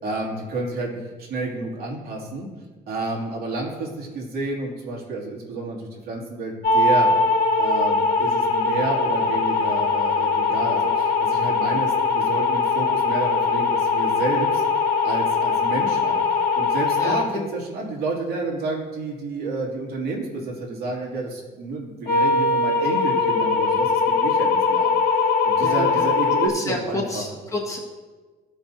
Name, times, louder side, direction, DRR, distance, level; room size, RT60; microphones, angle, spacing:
voice 1, 0.0-2.5 2.9-7.1 7.6-14.6 15.0-16.2 16.5-25.0 25.4-27.2, right 3 dB, 65° right, -3 dB, 2.8 m, -30 dB
sound 1, 6.6-17.3 22.0-26.5, left 4 dB, 60° left, 1.6 m, -21 dB
voice 2, 17.0-17.5 25.6-26.1 26.5-27.8, left 2 dB, 20° left, -3 dB, 1.8 m, -29 dB
15.5 x 5.8 x 2.8 m, 1.4 s
cardioid pair, 110°, 17 cm